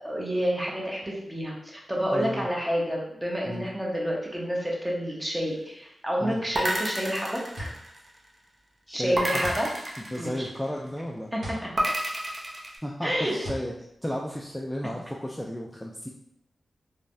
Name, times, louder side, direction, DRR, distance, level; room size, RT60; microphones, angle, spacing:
voice 1, 0.0-7.7 8.9-9.7 10.2-10.5 11.3-11.8 13.0-13.3, equal, 20° right, -3 dB, 0.9 m, -29 dB
voice 2, 2.1-2.5 3.5-3.7 6.2-6.4 8.9-9.5 10.1-11.3 12.8-13.7 14.0-16.1, equal, 10° left, -1 dB, 0.3 m, -33 dB
sound 1, 6.5-8.3 9.2-10.8 11.8-12.8, right 1 dB, 45° right, 0.6 m, -30 dB
sound 2, 7.2-15.1, equal, 65° right, 1.1 m, -42 dB
3.2 x 2.2 x 2.6 m, 0.79 s
cardioid pair, 50°, 0 cm